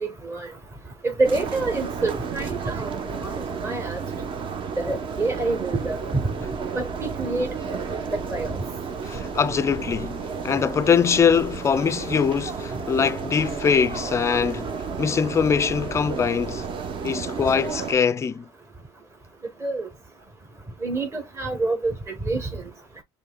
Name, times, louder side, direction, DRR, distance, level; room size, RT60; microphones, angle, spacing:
voice 1, 0.0-0.5 1.0-4.0 4.8-6.2 6.7-7.8 8.1-8.6 19.6-19.9 20.8-22.6, right 3 dB, 20° right, 1.2 m, -27 dB
sound 1, 1.2-17.9, right 5 dB, 40° right, 0.9 m, -32 dB
voice 2, 9.0-16.7 17.0-18.5, left 6 dB, 20° left, 0.4 m, -23 dB
7.1 x 3.1 x 2.2 m
cardioid pair, 135°, 13 cm